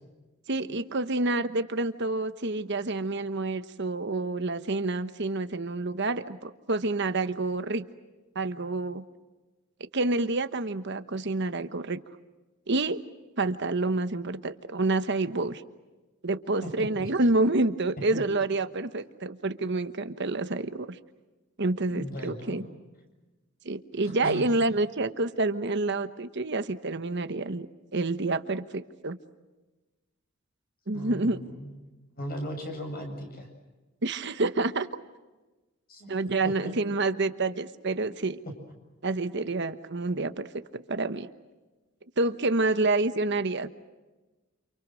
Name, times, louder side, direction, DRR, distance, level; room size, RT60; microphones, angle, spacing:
voice 1, 0.5-7.8 8.3-9.0 9.9-12.0 12.7-13.0 13.4-15.6 16.2-21.0 21.6-22.6 23.6-27.7 27.9-29.2 30.9-31.4 34.0-34.9 36.1-38.4 39.0-40.5 40.7-41.3 42.2-43.7, right 2 dB, 55° right, 10 dB, 1.2 m, -28 dB
voice 2, 21.9-22.6 24.0-24.5 30.9-31.7 32.2-33.5 35.9-36.1 36.4-36.7, equal, 45° left, 4 dB, 7.6 m, -37 dB
29.5 x 27.5 x 6.3 m, 1.2 s
head